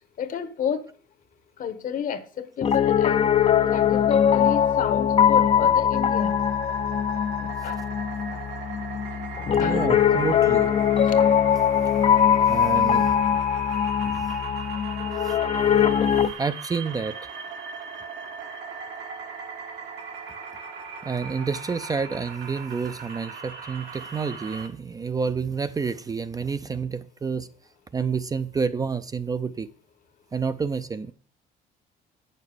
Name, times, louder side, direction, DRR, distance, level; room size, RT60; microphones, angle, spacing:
voice 1, 0.2-0.9 1.6-3.3 3.7-6.6 7.4-7.8 8.3-8.4 9.3-9.8 10.8-11.2, left 8 dB, 55° left, 1.1 m, -31 dB
Piano, 2.6-16.3, left 8 dB, 35° left, 0.5 m, -21 dB
sound 1, 5.9-24.7, right 5 dB, 80° right, 1.7 m, -39 dB
voice 2, 9.5-10.7 12.5-13.2 14.0-14.1 15.2-15.4 16.4-17.1 21.0-27.5 27.9-29.7 30.3-31.1, right 5 dB, 20° right, 0.4 m, -29 dB
8.5 x 6.7 x 4.9 m
cardioid pair, 110°, 17 cm